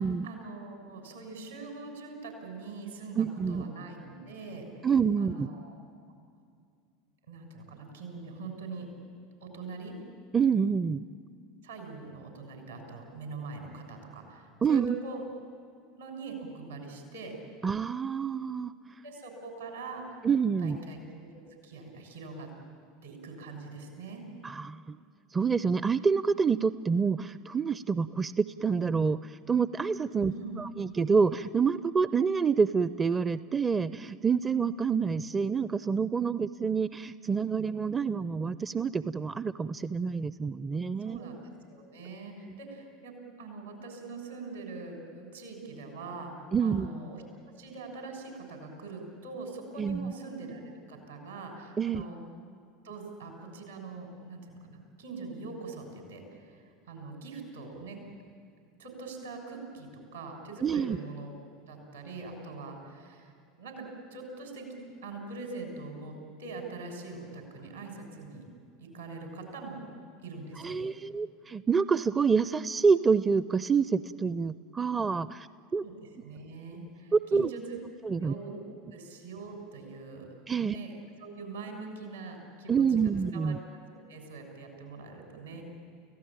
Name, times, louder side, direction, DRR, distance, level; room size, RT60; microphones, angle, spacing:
voice 1, 0.2-4.7 5.2-5.8 7.3-8.9 9.4-9.9 11.6-15.2 16.0-17.3 19.0-20.2 20.6-22.5 23.0-24.2 30.2-30.6 41.0-41.4 41.7-47.2 47.6-52.2 52.8-58.0 58.8-61.4 61.7-66.1 66.4-68.4 68.9-69.8 70.2-70.8 75.8-77.8 78.2-78.6 78.9-80.3 80.6-80.9 81.2-83.5 83.9-85.6, right 3 dB, 85° right, 1 dB, 6.5 m, -43 dB
voice 2, 3.2-3.7 4.8-5.5 10.3-11.0 14.6-14.9 17.6-18.7 20.2-20.8 24.4-25.0 25.3-41.2 46.5-46.9 49.8-50.1 51.8-52.0 60.6-61.0 70.6-75.5 75.7-75.8 77.1-77.5 78.0-78.3 80.5-80.8 82.7-83.6, right 5 dB, 20° right, 16 dB, 0.5 m, -27 dB
30.0 x 16.5 x 9.0 m, 2.3 s
figure-of-eight pair, 80°, 0 cm